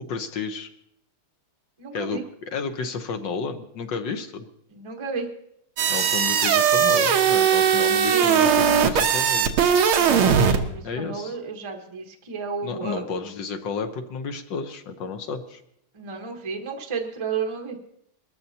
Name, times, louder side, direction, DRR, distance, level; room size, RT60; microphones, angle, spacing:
voice 1, 0.1-0.7 1.9-4.5 5.9-9.6 10.8-11.3 12.6-15.6, left 5 dB, 65° left, 7 dB, 1.5 m, -32 dB
voice 2, 1.8-2.2 4.7-5.3 7.7-8.4 10.0-13.0 15.9-17.8, right 5 dB, 20° right, 2 dB, 0.8 m, -33 dB
sound 1, 5.8-10.6, right 7 dB, 75° right, 1.8 m, -19 dB
22.0 x 13.5 x 2.8 m, 0.73 s
omnidirectional pair, 2.4 m